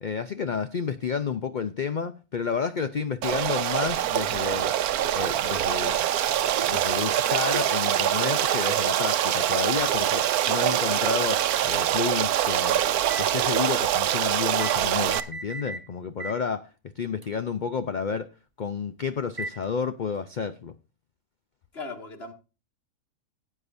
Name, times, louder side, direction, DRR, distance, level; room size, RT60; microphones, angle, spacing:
voice 1, 0.0-4.7 5.1-6.1 6.7-12.8 13.2-16.7 17.0-18.3 18.6-20.7, left 6 dB, 70° left, 0.4 m, -30 dB
Stream, 3.2-15.2, right 11 dB, 75° right, 1.2 m, -24 dB
sound 1, 13.1-13.3 14.6-14.8 15.1-15.9 16.2-16.4 17.2-17.3 19.4-19.6, right 2 dB, 20° right, 0.7 m, -36 dB
voice 2, 21.7-22.3, left 3 dB, 40° left, 1.9 m, -37 dB
17.5 x 8.6 x 2.6 m
omnidirectional pair, 1.6 m